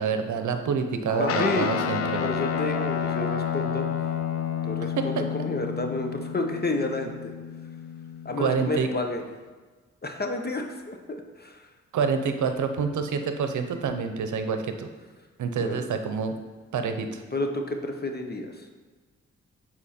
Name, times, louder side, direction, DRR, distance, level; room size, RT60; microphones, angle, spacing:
voice 1, 0.0-2.2 5.0-5.1 8.4-8.9 11.9-14.9 15.4-16.3 16.7-17.2, right 5 dB, 80° right, 7 dB, 0.7 m, -27 dB
sound 1, 1.1-5.5, right 2 dB, 15° right, 2.0 m, -39 dB
voice 2, 1.2-1.7 2.2-3.9 4.6-7.3 8.2-9.2 10.0-11.6 15.6-15.8 17.3-18.7, left 2 dB, 35° left, 4 dB, 1.0 m, -30 dB
Guitar, 1.3-8.9, left 8 dB, 50° left, 0.5 m, -30 dB
7.2 x 4.4 x 4.3 m, 1.4 s
cardioid pair, 55°, 30 cm